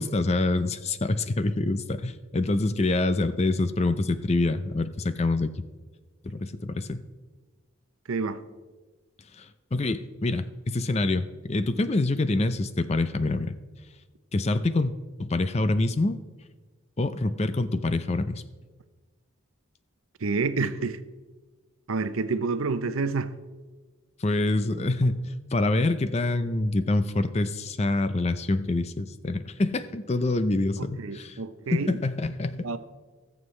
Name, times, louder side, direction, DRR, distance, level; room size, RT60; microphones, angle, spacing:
voice 1, 0.0-5.5 6.2-7.0 9.4-13.6 14.3-14.9 15.2-16.2 17.0-18.4 24.2-31.4 31.7-32.7, left 2 dB, 30° left, 0.5 m, -26 dB
voice 2, 8.1-8.4 20.2-21.0 21.9-23.3 30.8-32.0 32.6-32.8, right 4 dB, 85° right, 0.7 m, -28 dB
20.0 x 7.3 x 3.2 m
head